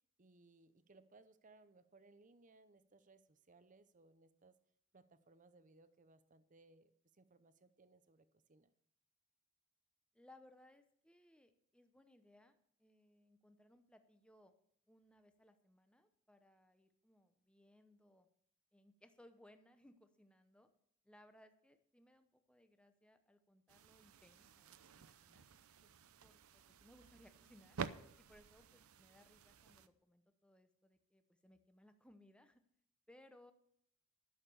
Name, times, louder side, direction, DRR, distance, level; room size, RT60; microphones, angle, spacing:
voice 1, 0.2-4.6 4.9-8.7 25.8-25.9, right 3 dB, 35° right, 12 dB, 0.7 m, -66 dB
voice 2, 10.1-14.5 14.9-18.3 18.7-20.7 21.0-25.4 26.2-27.8 28.2-32.6 33.1-33.5, left 1 dB, 5° left, 8 dB, 0.8 m, -66 dB
sound 1, 23.7-29.9, right 5 dB, 90° right, 0.6 m, -51 dB
12.0 x 6.7 x 6.8 m, 0.69 s
head